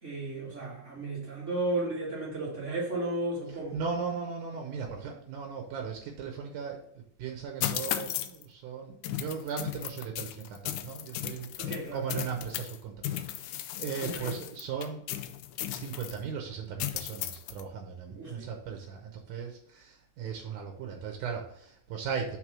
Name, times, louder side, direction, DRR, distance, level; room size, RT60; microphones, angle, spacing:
voice 1, 0.0-3.8 11.6-12.1 14.0-14.3 18.1-18.5, right 2 dB, 50° right, -5 dB, 0.8 m, -34 dB
voice 2, 3.7-6.8 7.2-15.0 15.7-22.4, right 6 dB, 75° right, 3 dB, 2.2 m, -37 dB
sound 1, 7.6-8.4 9.0-12.8 13.0-16.2 16.8-17.6, left 12 dB, 80° left, 1.8 m, -35 dB
6.0 x 3.6 x 6.0 m, 0.74 s
omnidirectional pair, 3.8 m